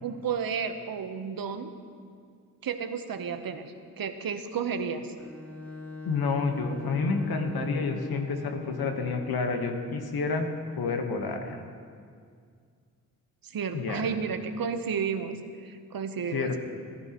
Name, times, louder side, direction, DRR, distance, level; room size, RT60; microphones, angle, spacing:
voice 1, 0.0-1.7 2.6-5.1 13.4-16.6, right 6 dB, 65° right, 8 dB, 0.9 m, -32 dB
Bowed string instrument, 5.2-9.3, left 3 dB, 5° left, 2.2 m, -40 dB
voice 2, 6.0-10.5 10.8-11.6 13.7-14.2 16.3-16.6, left 4 dB, 75° left, 4 dB, 1.3 m, -29 dB
17.0 x 11.0 x 3.0 m, 2.2 s
cardioid pair, 45°, 37 cm